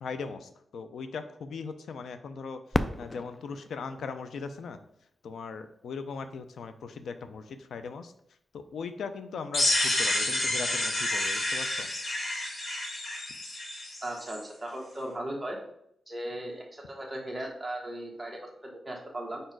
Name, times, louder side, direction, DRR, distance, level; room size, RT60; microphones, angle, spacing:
voice 1, 0.0-2.6 3.0-4.8 5.2-8.1 8.5-11.9, left 5 dB, 85° left, 9 dB, 0.5 m, -39 dB
Fireworks, 2.7-5.5 6.2-6.3 6.9-7.4 9.3-9.4, left 1 dB, 15° left, 0.3 m, -35 dB
sound 1, 9.5-14.4, left 1 dB, 55° left, 1.6 m, -29 dB
voice 2, 14.0-15.6 16.1-19.4, right 1 dB, 10° right, -1 dB, 1.3 m, -37 dB
5.1 x 4.4 x 4.5 m, 0.73 s
wide cardioid pair, 135°, 0 cm